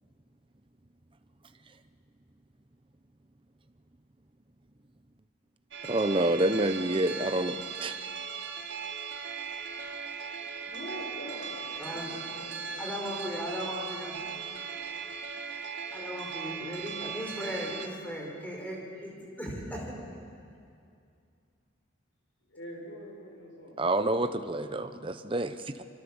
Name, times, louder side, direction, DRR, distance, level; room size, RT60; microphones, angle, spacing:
sound 1, 5.7-17.9, right 6 dB, 70° right, 2.0 m, -38 dB
voice 1, 5.8-8.0 23.8-25.8, right 1 dB, 25° right, 10 dB, 0.8 m, -28 dB
voice 2, 10.6-14.9 22.5-24.1, equal, 80° left, -1 dB, 7.1 m, -46 dB
voice 3, 11.8-12.2 12.8-14.2 15.9-20.0, equal, 10° left, -2 dB, 4.8 m, -37 dB
25.0 x 25.0 x 7.2 m, 2.4 s
head